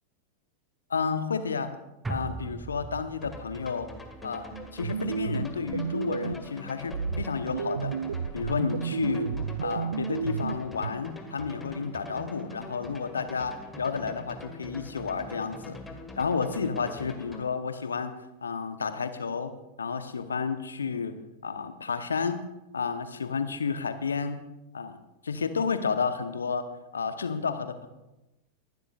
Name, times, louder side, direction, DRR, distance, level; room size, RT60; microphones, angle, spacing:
voice 1, 0.9-1.7 2.1-3.9 4.2-7.9 8.3-9.3 9.6-15.8 16.1-18.1 18.4-19.5 19.8-21.1 21.4-22.5 22.7-24.4 24.7-25.0 25.2-26.6 26.9-27.9, left 5 dB, 70° left, 10 dB, 1.0 m, -31 dB
sound 1, 2.0-6.5 6.8-6.9, right 3 dB, 10° right, 0.4 m, -41 dB
sound 2, 3.2-17.4, left 2 dB, 10° left, 1.6 m, -44 dB
sound 3, 4.5-6.5 6.9-10.9, right 6 dB, 70° right, 0.4 m, -32 dB
24.0 x 12.0 x 2.5 m, 0.99 s
figure-of-eight pair, 90°, 0 cm